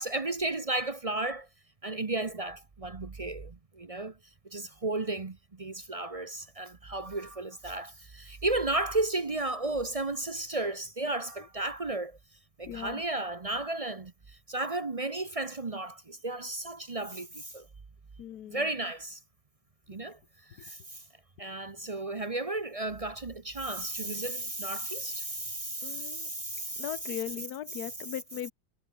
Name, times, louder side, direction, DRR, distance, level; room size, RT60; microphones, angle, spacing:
voice 1, 0.0-1.5 1.8-4.2 4.4-12.2 12.6-17.7 18.5-19.2 19.9-20.2 20.5-21.0 21.4-27.2 27.7-28.0, right 2 dB, 30° right, 0.6 m, -34 dB
voice 2, 12.7-13.0 18.2-18.6 25.8-26.3 26.8-28.5, left 11 dB, 60° left, 1.5 m, -38 dB
omnidirectional pair, 2.0 m